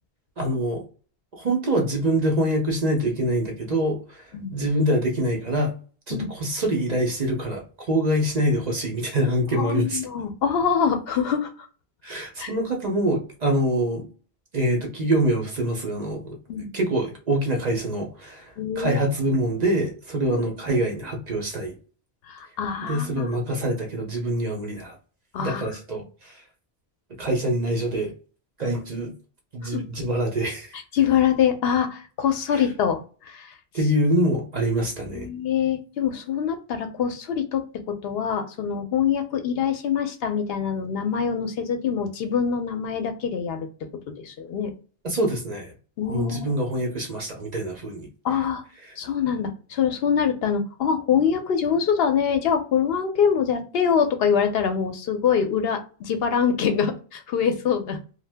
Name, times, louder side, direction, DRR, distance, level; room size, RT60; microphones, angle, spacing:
voice 1, 0.4-0.8 1.4-4.2 4.5-5.7 6.1-10.0 12.0-14.0 14.5-16.4 16.7-21.7 22.8-25.0 25.4-26.3 27.2-28.1 28.6-29.1 29.5-30.8 32.5-32.6 33.7-35.3 45.0-45.7 46.1-48.1, right 1 dB, 45° right, 1 dB, 0.7 m, -25 dB
voice 2, 9.6-11.7 12.4-12.5 16.5-16.7 18.6-19.0 20.3-20.5 22.3-23.4 25.3-25.6 29.6-29.8 30.9-33.0 33.3-33.5 35.1-43.7 44.2-44.7 46.0-46.4 48.2-48.6 49.0-58.0, left 7 dB, 70° left, 6 dB, 0.8 m, -24 dB
2.6 x 2.1 x 3.3 m, 0.38 s
omnidirectional pair, 1.1 m